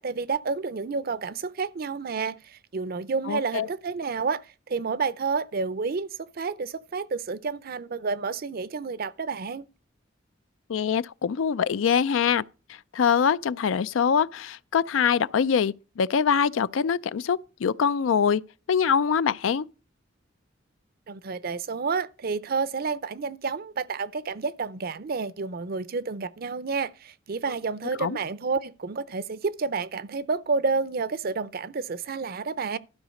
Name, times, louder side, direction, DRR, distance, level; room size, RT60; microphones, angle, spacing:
voice 1, 0.0-4.4 4.7-9.7 21.1-32.8, right 4 dB, 50° right, 0.5 m, -30 dB
voice 2, 3.3-3.7 10.7-12.4 12.9-18.4 18.7-19.6 28.0-28.2, left 7 dB, 80° left, 0.4 m, -24 dB
12.5 x 4.9 x 6.4 m
head